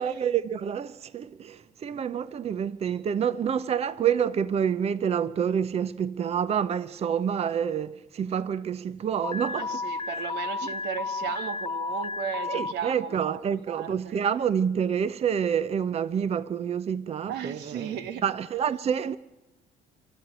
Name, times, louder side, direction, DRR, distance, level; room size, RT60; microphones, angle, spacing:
voice 1, 0.0-9.8 12.5-19.2, right 8 dB, 40° right, 0.7 m, -28 dB
Alarm, 9.2-12.7, left 4 dB, 30° left, 0.9 m, -32 dB
voice 2, 9.5-13.4 13.7-14.2 17.3-18.2, right 8 dB, 85° right, 1.5 m, -35 dB
29.5 x 13.5 x 8.9 m
cardioid pair, 110°, 17 cm